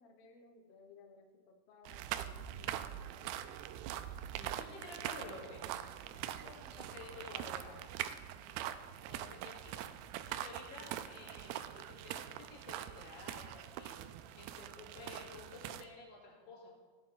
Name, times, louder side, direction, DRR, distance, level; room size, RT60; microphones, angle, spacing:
voice 1, 0.0-3.3, left 4 dB, 75° left, 3 dB, 1.3 m, -61 dB
sound 1, 1.9-15.8, right 11 dB, 85° right, 2.5 m, -43 dB
voice 2, 4.2-5.6 6.1-7.7 9.1-9.8 10.3-14.0 14.3-16.7, left 3 dB, 50° left, -4 dB, 3.7 m, -52 dB
15.5 x 9.5 x 3.9 m, 1.4 s
omnidirectional pair, 4.6 m